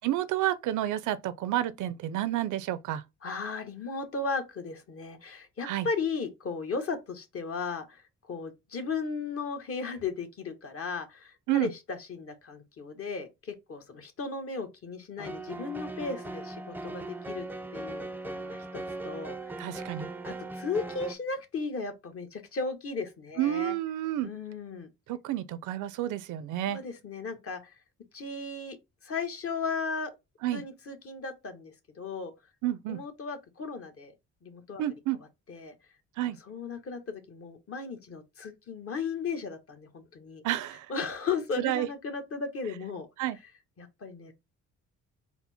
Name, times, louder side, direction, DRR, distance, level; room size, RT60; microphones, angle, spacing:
voice 1, 0.0-3.0 5.6-5.9 11.5-11.7 19.6-20.1 23.4-24.3 25.1-26.8 30.4-30.6 32.6-33.0 34.8-35.2 36.2-36.4 40.4-40.9 41.6-41.9 43.2-43.4, right 13 dB, 80° right, 0.5 m, -30 dB
voice 2, 3.2-17.5 17.7-19.8 20.2-23.7 24.2-24.9 26.7-27.7 28.1-28.8 29.0-30.1 30.5-32.3 32.9-34.1 34.4-34.8 35.5-35.7 36.5-40.4 40.9-43.1 43.8-44.3, left 4 dB, 50° left, 1.1 m, -36 dB
sound 1, 15.2-21.1, right 2 dB, 5° right, 0.4 m, -39 dB
4.3 x 2.0 x 4.1 m
cardioid pair, 90°, 30 cm